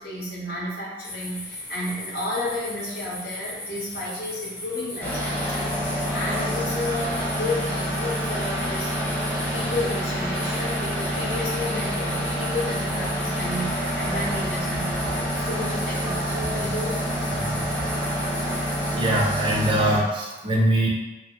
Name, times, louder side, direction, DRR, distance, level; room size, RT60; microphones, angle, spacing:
voice 1, 0.0-17.0, left 1 dB, 55° left, -5 dB, 0.7 m, -32 dB
sound 1, 1.0-19.7, left 1 dB, 85° left, 1.1 m, -38 dB
sound 2, 5.0-20.0, equal, 10° left, 0.6 m, -27 dB
voice 2, 17.4-18.2 18.9-20.9, right 1 dB, 30° right, -2 dB, 0.4 m, -24 dB
2.7 x 2.2 x 2.8 m, 1.1 s
head